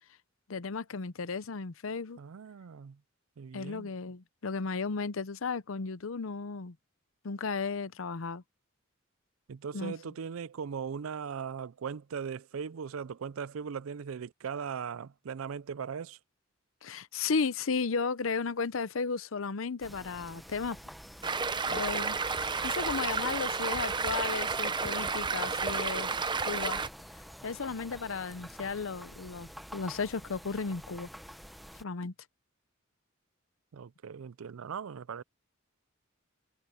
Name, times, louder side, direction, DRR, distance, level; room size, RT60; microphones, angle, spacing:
voice 1, 0.5-2.2 3.5-6.8 7.2-8.4 9.7-9.9 16.8-20.8 21.7-26.1 26.4-26.8 27.1-31.1 31.8-32.1, left 4 dB, 75° left, 0.7 m, -34 dB
voice 2, 2.2-3.0 3.4-3.9 9.5-16.2 33.7-35.2, right 6 dB, 90° right, 0.4 m, -39 dB
sound 1, 19.8-31.8, equal, ahead, 0.9 m, -48 dB
Stream, 21.2-26.9, right 4 dB, 25° right, 0.7 m, -31 dB
head